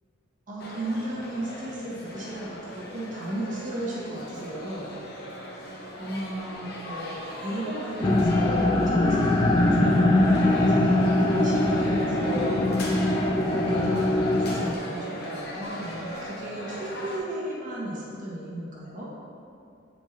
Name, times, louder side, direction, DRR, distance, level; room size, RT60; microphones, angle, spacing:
voice 1, 0.5-4.9 6.0-12.5 13.3-19.1, right 1 dB, 40° right, -6 dB, 1.5 m, -35 dB
sound 1, 0.6-17.2, equal, 50° left, 0.9 m, -38 dB
sound 2, 8.0-14.7, left 1 dB, 20° left, 0.3 m, -22 dB
8.8 x 4.5 x 2.9 m, 2.5 s
head